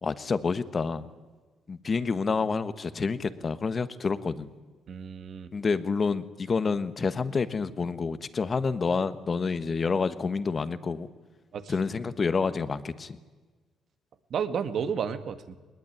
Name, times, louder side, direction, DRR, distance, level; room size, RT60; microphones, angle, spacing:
voice 1, 0.0-1.1 1.7-4.5 5.5-11.1 11.7-13.2, left 4 dB, 35° left, 13 dB, 1.4 m, -28 dB
voice 2, 4.9-5.5 11.5-11.7 14.3-15.6, right 7 dB, 60° right, 10 dB, 1.8 m, -32 dB
20.5 x 20.0 x 10.0 m, 1.3 s
cardioid pair, 90°, 0 cm